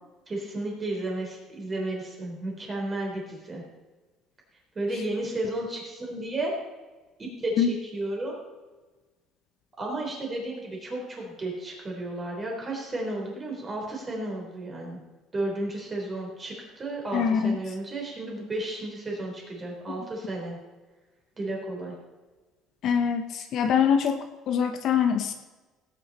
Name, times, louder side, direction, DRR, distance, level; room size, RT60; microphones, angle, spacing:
voice 1, 0.3-3.6 4.8-6.5 7.2-8.4 9.8-15.0 15.3-20.6 21.4-21.9, right 2 dB, 20° right, -1 dB, 3.8 m, -33 dB
voice 2, 17.1-17.6 22.8-25.3, left 7 dB, 45° left, 7 dB, 0.9 m, -24 dB
17.5 x 9.3 x 4.3 m, 1.2 s
cardioid pair, 165°, 0 cm